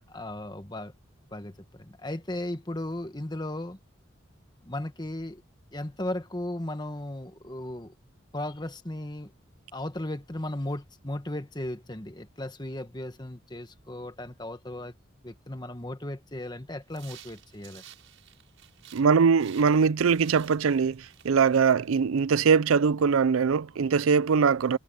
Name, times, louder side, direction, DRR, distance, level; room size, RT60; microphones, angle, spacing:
voice 1, 0.1-0.9 1.3-3.8 4.6-5.4 5.7-7.9 8.3-9.3 9.7-14.9 15.2-17.8, left 1 dB, 20° left, 1.4 m, -36 dB
sound 1, 16.9-19.1 19.4-22.0, right 11 dB, 70° right, 6.9 m, -52 dB
voice 2, 18.9-24.8, right 6 dB, 85° right, 0.5 m, -22 dB
head